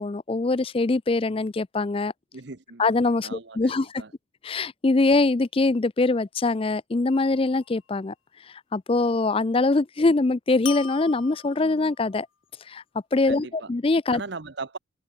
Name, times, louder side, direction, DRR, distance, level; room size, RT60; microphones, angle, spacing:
voice 1, 0.0-2.1 2.8-4.0 4.4-8.1 8.5-12.3 12.7-12.8 13.1-14.2, left 3 dB, 25° left, 0.4 m, -23 dB
voice 2, 2.3-2.9 3.2-4.1 13.2-13.7 14.1-14.8, right 3 dB, 55° right, 1.0 m, -38 dB
sound 1, 7.1-7.8 10.7-12.1, left 10 dB, 85° left, 3.0 m, -40 dB
head